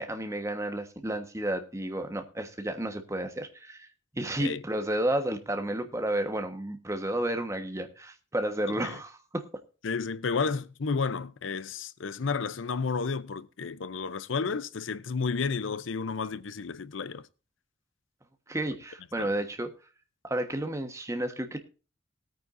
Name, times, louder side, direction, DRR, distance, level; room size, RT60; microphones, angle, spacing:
voice 1, 0.0-3.9 4.1-9.5 18.5-19.7 20.2-21.6, right 1 dB, 15° right, 1.3 m, -31 dB
voice 2, 8.7-9.0 9.8-17.2 19.2-19.3, left 5 dB, 85° left, 0.6 m, -32 dB
19.0 x 9.0 x 2.6 m
head